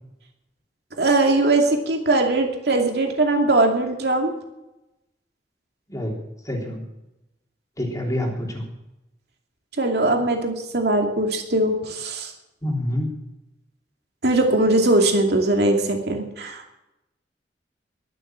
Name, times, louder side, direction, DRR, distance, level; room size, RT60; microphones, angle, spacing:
voice 1, 1.0-4.3 9.8-12.3 14.2-16.8, right 2 dB, 65° right, 2 dB, 2.5 m, -20 dB
voice 2, 6.5-6.8 7.8-8.6 12.6-13.1, left 1 dB, 20° left, 0 dB, 3.4 m, -26 dB
22.0 x 7.8 x 7.4 m, 0.94 s
head